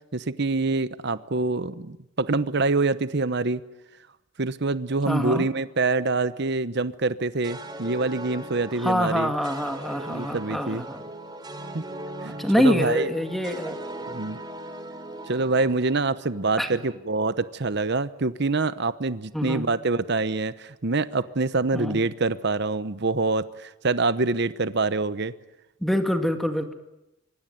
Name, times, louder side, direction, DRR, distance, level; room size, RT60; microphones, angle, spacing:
voice 1, 0.1-3.6 4.4-9.3 10.1-10.8 11.7-11.8 12.2-13.1 14.1-14.4 15.3-25.3, right 3 dB, 55° right, 14 dB, 0.9 m, -25 dB
voice 2, 5.1-5.5 8.8-11.0 12.2-13.8 16.6-16.7 19.3-19.7 21.7-22.0 25.8-26.7, equal, ahead, 5 dB, 1.9 m, -25 dB
sound 1, 7.4-16.8, right 1 dB, 20° right, 2.9 m, -39 dB
24.5 x 24.5 x 9.3 m, 0.93 s
head